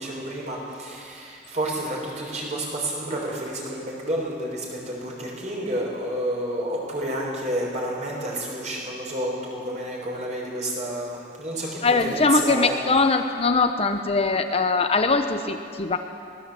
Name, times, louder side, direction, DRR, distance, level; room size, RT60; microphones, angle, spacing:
voice 1, 0.0-12.8, right 1 dB, 40° right, -2 dB, 6.3 m, -30 dB
voice 2, 11.8-16.0, left 3 dB, 35° left, 6 dB, 1.0 m, -21 dB
23.0 x 18.5 x 8.4 m, 2.3 s
head